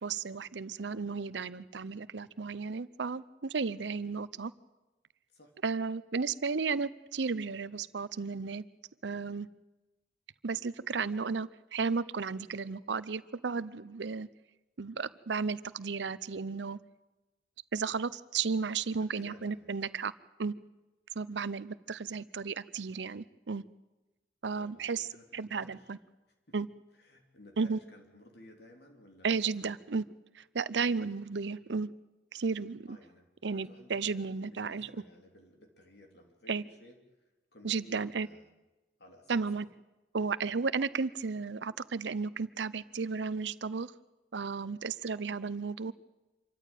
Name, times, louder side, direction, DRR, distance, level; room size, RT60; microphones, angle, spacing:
voice 1, 0.0-4.5 5.6-8.6 9.0-9.5 10.4-14.3 14.8-16.8 17.7-20.1 20.4-20.5 21.2-23.6 24.4-25.1 25.3-26.0 26.5-26.7 27.6-27.8 29.2-30.0 30.3-31.9 32.3-33.0 33.4-34.9 36.5-36.6 37.6-38.3 39.3-39.7 40.1-43.9 44.3-45.9, right 5 dB, 80° right, 17 dB, 0.7 m, -34 dB
voice 2, 19.0-19.7 24.5-25.9 26.5-26.6 27.0-29.7 32.9-38.5 39.0-39.7, left 1 dB, 65° left, 3 dB, 3.4 m, -56 dB
26.5 x 14.0 x 9.2 m, 1.1 s
head